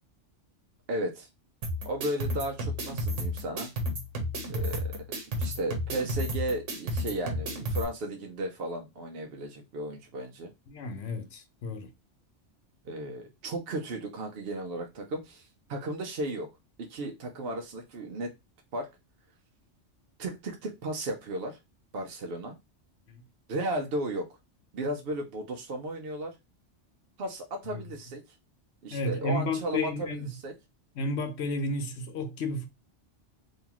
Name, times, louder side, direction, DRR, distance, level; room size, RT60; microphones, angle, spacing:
voice 1, 0.9-1.3 1.8-3.7 4.4-5.0 5.4-10.5 12.8-16.5 16.8-18.3 18.7-18.9 20.2-21.6 21.9-22.6 23.5-24.3 24.7-26.3 27.2-28.2 28.8-30.5, right 1 dB, 60° right, 0.8 m, -34 dB
sound 1, 1.6-7.8, equal, 80° right, 1.3 m, -32 dB
voice 2, 10.7-11.9 23.1-23.2 27.7-27.8 28.9-30.3 31.0-32.7, left 2 dB, 65° left, 1.0 m, -32 dB
3.7 x 2.8 x 2.9 m
omnidirectional pair, 1.3 m